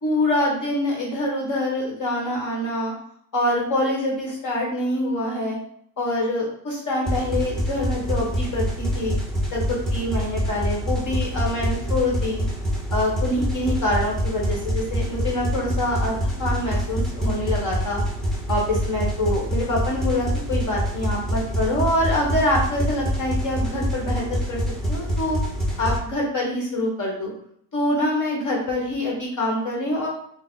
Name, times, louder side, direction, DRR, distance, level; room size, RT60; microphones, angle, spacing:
voice 1, 0.0-2.9 3.3-5.6 6.0-9.1 9.5-12.5 12.9-16.1 16.4-18.0 18.5-24.6 24.9-25.4 25.8-27.3 27.7-30.1, left 1 dB, 40° left, -2 dB, 1.3 m, -25 dB
sound 1, 7.1-26.0, equal, ahead, 0.8 m, -26 dB
3.7 x 2.2 x 3.8 m, 0.66 s
cardioid pair, 120°, 46 cm